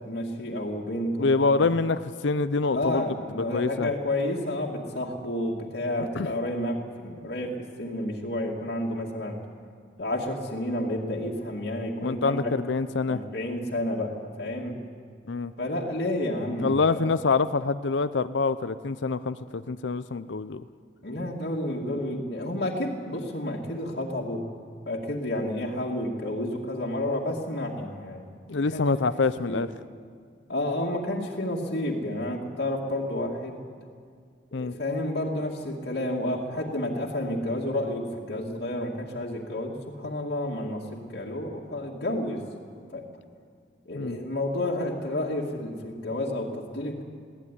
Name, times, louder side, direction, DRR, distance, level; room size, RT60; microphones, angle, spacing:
voice 1, 0.0-1.3 1.6-1.7 2.7-9.4 10.0-12.4 13.1-14.8 15.6-17.0 21.0-24.4 24.9-28.3 28.7-28.8 29.4-29.6 30.5-33.6 34.5-42.4 42.9-43.0 43.9-47.0, left 1 dB, 65° left, -3 dB, 2.3 m, -30 dB
voice 2, 1.2-3.0 3.5-3.9 6.2-6.3 12.0-13.2 15.3-15.5 16.6-20.6 28.5-29.7 34.5-34.7 43.9-44.2, left 4 dB, 80° left, 12 dB, 0.6 m, -25 dB
21.5 x 17.0 x 10.0 m, 2.1 s
head